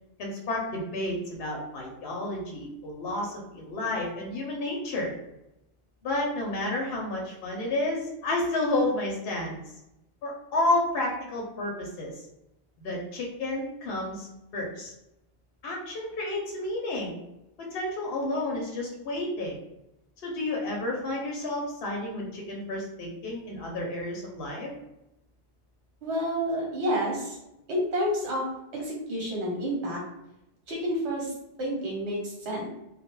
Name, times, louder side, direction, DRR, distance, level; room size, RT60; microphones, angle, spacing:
voice 1, 0.2-5.1 6.0-9.6 10.2-12.1 12.8-14.3 14.5-14.9 15.6-17.2 17.7-19.6 20.2-24.7, left 2 dB, 65° left, -1 dB, 0.7 m, -31 dB
voice 2, 26.0-27.4 27.7-28.5 28.7-30.0 30.7-31.3 31.6-32.7, equal, 70° right, -2 dB, 1.1 m, -29 dB
2.2 x 2.1 x 2.9 m, 0.88 s
omnidirectional pair, 1.2 m